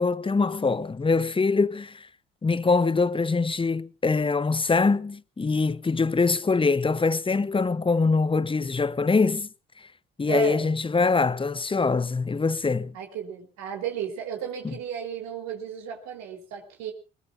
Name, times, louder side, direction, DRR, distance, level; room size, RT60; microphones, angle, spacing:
voice 1, 0.0-2.1 2.4-9.5 10.2-13.0, left 4 dB, 20° left, 0.9 m, -23 dB
voice 2, 10.3-10.7 12.9-16.9, right 7 dB, 65° right, 3.9 m, -33 dB
21.5 x 21.0 x 2.6 m
hypercardioid pair, 60°, 29 cm